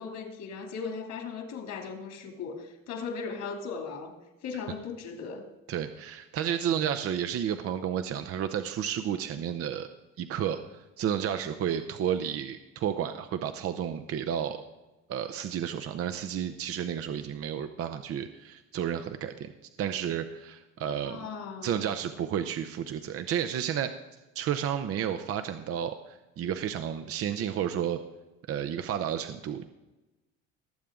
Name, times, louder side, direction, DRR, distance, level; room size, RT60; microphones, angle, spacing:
voice 1, 0.0-4.2 4.4-5.4 21.0-21.8, left 5 dB, 65° left, 4 dB, 2.7 m, -37 dB
voice 2, 5.7-9.9 10.2-14.6 15.1-19.5 19.8-21.3 21.6-23.9 24.3-28.0 28.5-29.7, right 9 dB, 45° right, 9 dB, 0.8 m, -31 dB
19.0 x 7.5 x 3.7 m, 1.1 s
supercardioid pair, 95°, 32 cm